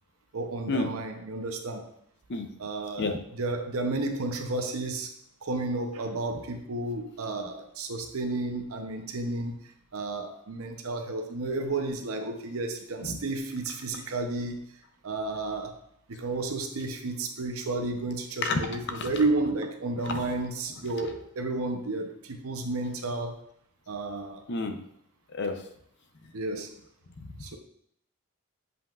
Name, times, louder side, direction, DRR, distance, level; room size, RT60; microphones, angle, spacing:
voice 1, 0.3-1.9 2.6-5.1 5.4-14.6 15.0-15.8 16.1-23.5 23.9-24.4 26.3-26.8 27.4-27.6, right 2 dB, 75° right, 4 dB, 0.7 m, -32 dB
voice 2, 24.5-24.8 25.3-25.6 27.2-27.4, left 3 dB, 50° left, 6 dB, 0.6 m, -30 dB
7.7 x 5.4 x 2.4 m, 0.71 s
head